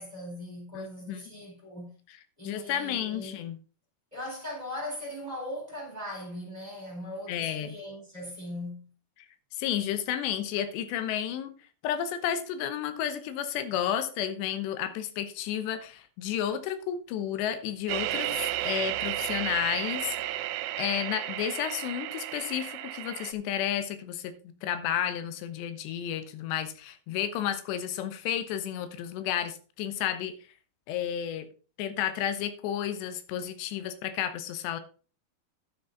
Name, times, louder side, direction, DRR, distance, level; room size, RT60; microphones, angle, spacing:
voice 1, 0.0-1.9 2.4-3.4 4.1-8.9, left 1 dB, 10° right, 4.0 m, -39 dB
voice 2, 0.7-1.2 2.4-3.6 7.3-7.7 9.5-11.5 11.8-20.5 20.8-30.4 30.9-31.5 31.8-34.8, left 10 dB, 90° left, 3.2 m, -32 dB
sound 1, 17.9-23.3, right 15 dB, 90° right, 2.8 m, -33 dB
11.0 x 8.0 x 3.9 m
omnidirectional pair, 4.8 m